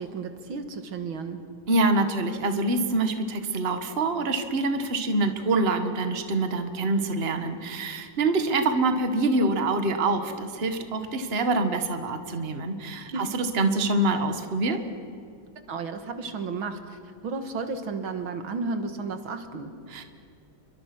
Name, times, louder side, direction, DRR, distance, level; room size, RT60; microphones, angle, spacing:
voice 1, 0.0-1.4 8.4-8.5 13.1-13.3 15.7-19.8, right 4 dB, 75° right, 8 dB, 2.4 m, -33 dB
voice 2, 1.7-14.8 19.9-20.0, right 2 dB, 30° right, 7 dB, 1.7 m, -25 dB
29.5 x 24.0 x 6.2 m, 2.4 s
omnidirectional pair, 2.2 m